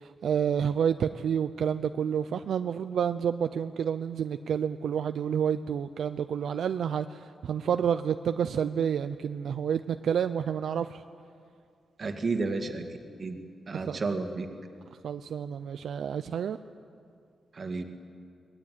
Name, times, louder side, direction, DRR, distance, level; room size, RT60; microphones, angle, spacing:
voice 1, 0.2-7.1 7.4-10.9 13.9-14.0 15.0-16.6, right 8 dB, 75° right, 10 dB, 0.6 m, -29 dB
voice 2, 12.0-12.9 13.2-13.4 13.7-14.5 17.5-17.8, right 3 dB, 40° right, 5 dB, 2.0 m, -31 dB
23.0 x 19.5 x 9.4 m, 2.3 s
wide cardioid pair, 125°, 0 cm